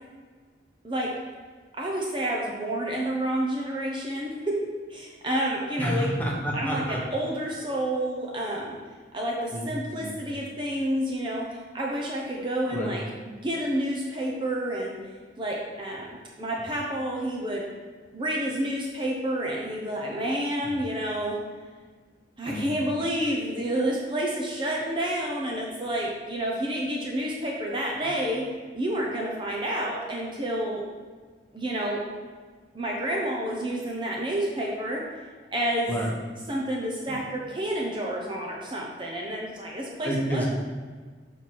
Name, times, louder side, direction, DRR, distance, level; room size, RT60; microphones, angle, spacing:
voice 1, 1.7-6.1 6.5-8.8 9.1-15.0 15.4-17.6 18.1-21.4 22.4-28.5 28.7-30.8 31.5-32.0 32.7-35.0 35.5-35.9 36.5-40.5, right 1 dB, 25° right, -2 dB, 0.8 m, -29 dB
voice 2, 5.8-7.0 9.5-9.7 10.0-10.3 12.7-12.9 20.6-20.7 22.5-22.7 28.0-28.1 35.9-36.1 37.1-37.2 40.0-40.5, equal, 10° left, -3 dB, 1.1 m, -29 dB
6.6 x 4.5 x 4.2 m, 1.5 s
head